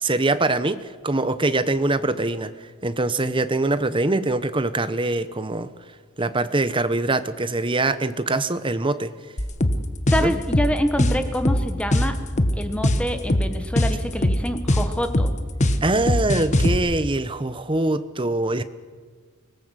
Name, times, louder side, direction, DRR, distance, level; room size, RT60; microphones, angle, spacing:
voice 1, 0.0-5.7 6.2-9.1 10.2-10.3 15.8-18.6, right 2 dB, 25° right, 12 dB, 1.0 m, -23 dB
sound 1, 9.4-16.8, left 1 dB, 35° left, 1.3 m, -21 dB
voice 2, 10.1-12.2 12.5-15.3, equal, 5° left, 8 dB, 1.3 m, -26 dB
25.0 x 18.0 x 8.2 m, 1.5 s
head